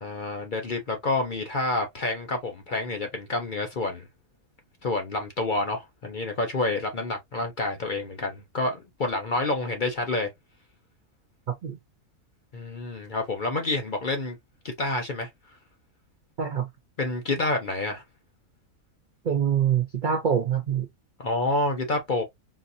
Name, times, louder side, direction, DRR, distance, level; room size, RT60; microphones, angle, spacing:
voice 1, 0.0-4.0 4.8-10.3 12.5-14.4 14.6-15.3 17.0-18.0 21.2-22.2, left 2 dB, 45° left, 0.7 m, -28 dB
voice 2, 19.2-20.9, right 8 dB, 65° right, 0.5 m, -24 dB
4.0 x 2.7 x 2.5 m
omnidirectional pair, 1.5 m